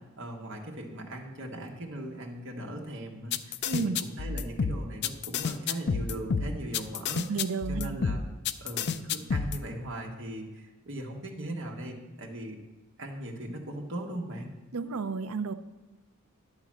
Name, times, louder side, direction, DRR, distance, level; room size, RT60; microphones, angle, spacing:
voice 1, 0.2-7.3 7.7-8.2 8.6-12.6 13.0-14.5, right 1 dB, 60° right, 0 dB, 1.5 m, -39 dB
sound 1, 3.3-9.6, left 5 dB, 50° left, 0.4 m, -29 dB
voice 2, 3.6-4.0 7.3-8.0 14.7-15.5, right 4 dB, 90° right, 11 dB, 0.6 m, -31 dB
11.0 x 3.9 x 7.4 m, 1.2 s
head